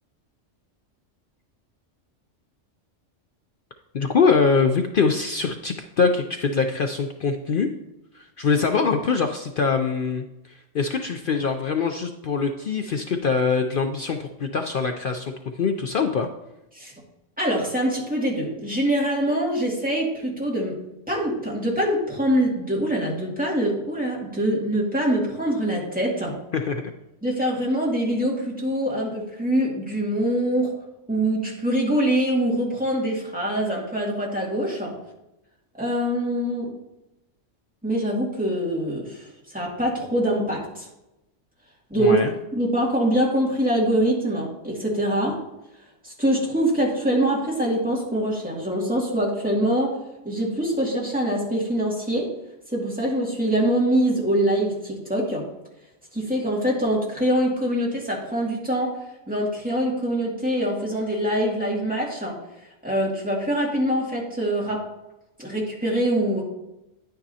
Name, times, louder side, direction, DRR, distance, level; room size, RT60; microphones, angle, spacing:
voice 1, 3.9-7.7 8.1-10.2 10.7-16.3 26.5-26.8 42.0-42.3, left 5 dB, 55° left, 5 dB, 0.7 m, -23 dB
voice 2, 17.4-20.8 21.1-26.3 27.2-30.7 31.1-34.9 35.8-36.7 37.8-39.2 39.5-40.9 41.9-42.2 42.5-45.4 46.0-50.0 50.2-52.3 52.7-55.4 56.1-59.0 59.3-62.3 62.8-64.8 65.4-66.4, right 1 dB, 5° right, -4 dB, 2.1 m, -24 dB
10.0 x 9.1 x 2.8 m, 0.91 s
omnidirectional pair, 1.2 m